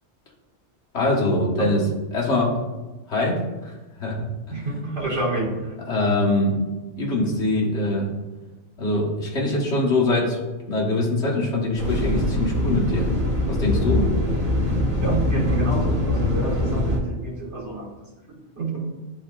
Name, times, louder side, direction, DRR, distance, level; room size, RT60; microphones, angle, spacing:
voice 1, 0.9-2.6 3.1-3.7 4.0-4.6 5.9-6.6 7.0-8.1 8.8-10.4 10.7-13.1 13.5-14.1, left 2 dB, 60° left, -4 dB, 1.7 m, -23 dB
voice 2, 4.5-5.7 15.0-17.9 18.6-18.9, right 2 dB, 60° right, -4 dB, 2.0 m, -28 dB
sound 1, 11.8-17.0, left 1 dB, 35° right, 1.5 m, -23 dB
10.0 x 4.1 x 2.4 m, 1.2 s
omnidirectional pair, 1.4 m